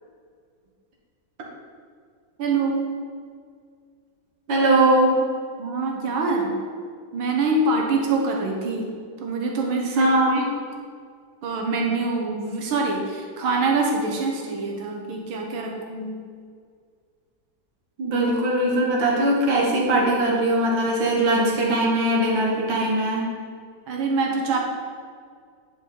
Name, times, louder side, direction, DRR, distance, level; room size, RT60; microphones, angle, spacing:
voice 1, 2.4-2.9 5.6-6.6 7.1-8.9 9.2-10.4 11.4-16.1 23.9-24.6, right 3 dB, 90° right, 0 dB, 1.9 m, -25 dB
voice 2, 4.5-5.2 10.0-10.5 18.0-23.2, right 1 dB, 70° right, -3 dB, 2.1 m, -20 dB
10.0 x 5.0 x 3.9 m, 2.1 s
omnidirectional pair, 2.1 m